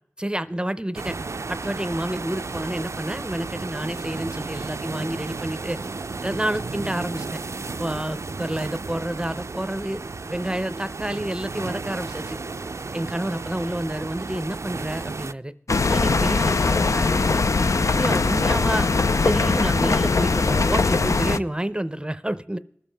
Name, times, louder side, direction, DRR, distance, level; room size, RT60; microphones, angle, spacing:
voice 1, 0.2-1.2 1.5-5.8 6.2-7.4 7.8-10.0 10.3-12.4 12.9-15.5 15.9-17.4 17.9-18.9 19.2-22.6, right 1 dB, 20° right, 13 dB, 0.5 m, -29 dB
sound 1, 0.9-15.3, right 3 dB, 70° right, 0.3 m, -33 dB
sound 2, 15.7-21.4, left 3 dB, 90° left, 0.4 m, -21 dB
20.0 x 7.3 x 3.4 m, 0.73 s
wide cardioid pair, 55°, 5 cm